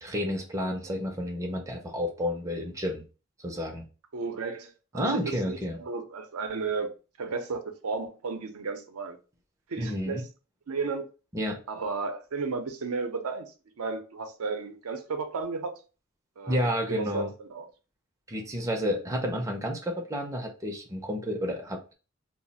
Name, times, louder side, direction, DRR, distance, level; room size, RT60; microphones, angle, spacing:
voice 1, 0.0-3.0 3.4-3.8 4.9-5.8 9.8-10.2 11.3-11.6 16.5-17.3 18.3-21.9, equal, 15° right, 0.4 m, -30 dB
voice 2, 4.1-6.9 7.2-9.2 9.7-10.2 10.7-11.0 11.7-15.7 16.4-16.6 16.9-17.7, right 4 dB, 85° right, 0.5 m, -33 dB
2.4 x 2.0 x 3.9 m
head